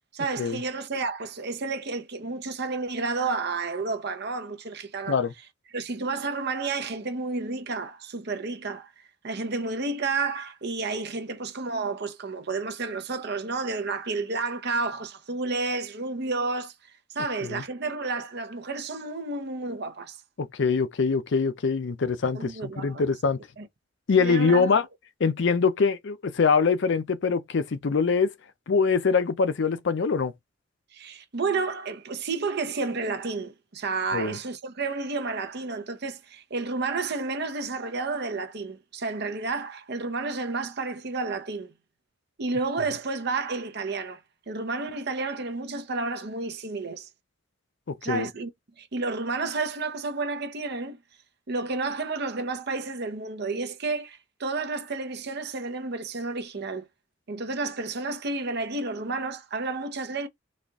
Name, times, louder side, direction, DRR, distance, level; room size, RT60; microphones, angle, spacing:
voice 1, 0.1-5.2 5.7-8.9 9.2-16.7 17.1-20.2 22.3-23.1 23.6-23.7 24.2-24.7 30.9-41.7 42.4-44.2 44.5-47.1 48.0-48.5 48.8-51.0 51.5-56.9 57.3-60.3, right 3 dB, 60° right, 0.8 m, -31 dB
voice 2, 20.4-23.4 24.1-24.8 25.2-28.3 28.7-30.3 34.1-34.3 47.9-48.3, left 5 dB, 65° left, 0.5 m, -24 dB
4.2 x 2.5 x 3.4 m
head